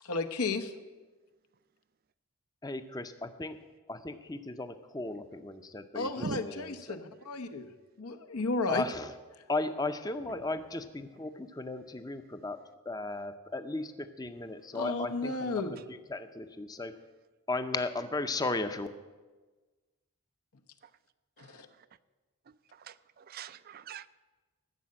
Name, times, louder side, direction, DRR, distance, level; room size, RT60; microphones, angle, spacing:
voice 1, 0.0-0.7 5.9-7.7 8.0-8.9 14.7-15.8 21.4-21.7, left 3 dB, 85° left, 6 dB, 1.0 m, -33 dB
voice 2, 2.6-3.6 3.9-6.1 6.4-6.5 6.9-7.0 8.7-9.1 9.5-12.6 12.9-15.5 16.1-16.9 17.5-18.9, left 2 dB, 15° left, 10 dB, 0.5 m, -35 dB
voice 3, 21.4-21.9 22.5-24.1, right 5 dB, 40° right, 15 dB, 0.3 m, -42 dB
13.5 x 6.7 x 8.7 m, 1.3 s
head